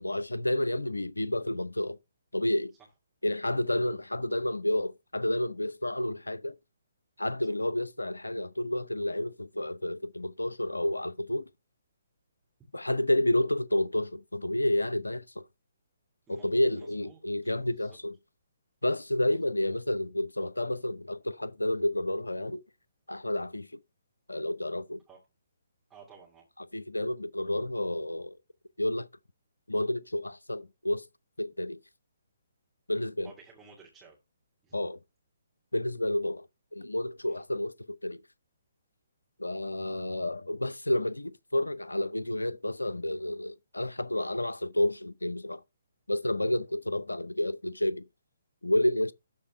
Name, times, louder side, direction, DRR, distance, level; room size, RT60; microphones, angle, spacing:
voice 1, 0.0-2.0 2.3-2.7 3.2-6.6 7.2-11.5 12.7-15.4 16.3-18.2 18.8-22.6 23.1-23.7 24.3-25.0 26.7-28.4 28.8-29.1 29.7-31.1 31.4-31.8 32.9-33.3 34.7-35.0 35.7-38.2 39.4-45.6 46.1-48.1 48.6-49.1, left 1 dB, 85° left, 0.6 m, -30 dB
voice 2, 16.3-18.0 19.3-19.4 25.1-25.2 25.9-26.5 33.2-34.2 34.6-34.7 37.2-37.4 46.4-46.5, right 5 dB, 10° right, 2.7 m, -55 dB
12.5 x 4.3 x 5.4 m
figure-of-eight pair, 135°, 0 cm